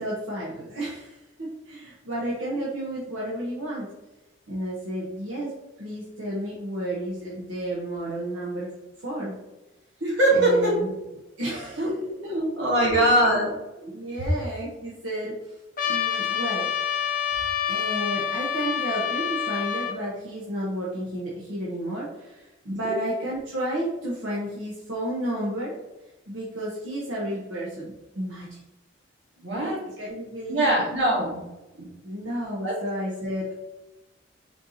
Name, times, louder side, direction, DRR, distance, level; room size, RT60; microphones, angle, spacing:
voice 1, 0.0-3.9 4.5-5.5 5.8-8.7 9.0-9.3 10.3-10.9 11.4-11.9 12.2-12.4 12.8-13.1 13.8-15.6 15.9-16.7 17.7-25.7 26.3-28.6 29.5-30.7 32.0-33.5, right 1 dB, 80° right, -5 dB, 1.0 m, -32 dB
voice 2, 10.0-10.8 11.8-13.5 22.7-23.0 29.4-29.8 30.5-31.4 31.7-31.9 32.6-32.8, right 1 dB, 65° right, -3 dB, 1.6 m, -22 dB
Trumpet, 15.8-20.0, left 8 dB, 40° left, 0.5 m, -27 dB
4.4 x 2.8 x 4.0 m, 1.0 s
head